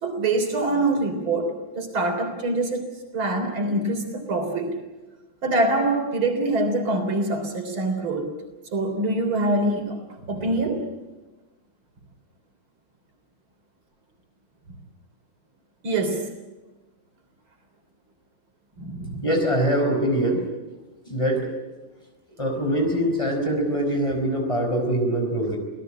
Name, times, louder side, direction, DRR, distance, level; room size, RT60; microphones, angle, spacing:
voice 1, 0.0-1.5 1.7-2.8 3.1-4.7 5.4-8.2 8.7-10.0 10.2-10.8 15.8-16.2 18.8-19.2, right 2 dB, 85° right, 5 dB, 4.5 m, -24 dB
voice 2, 19.2-20.4 21.1-21.5 22.4-25.6, right 1 dB, 15° left, 3 dB, 5.1 m, -23 dB
27.0 x 17.5 x 9.0 m, 1.1 s
omnidirectional pair, 2.2 m